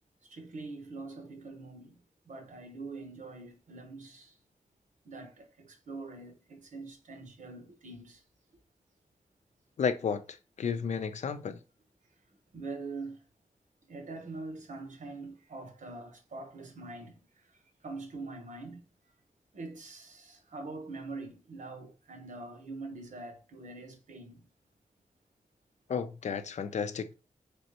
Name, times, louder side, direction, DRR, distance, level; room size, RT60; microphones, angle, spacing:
voice 1, 0.3-4.4 5.0-8.2 12.5-13.2 13.9-18.8 19.5-24.5, right 3 dB, 80° right, 1.0 m, -44 dB
voice 2, 9.8-11.6 25.9-27.1, left 6 dB, 70° left, 0.4 m, -32 dB
4.1 x 3.4 x 2.9 m
wide cardioid pair, 145°, 13 cm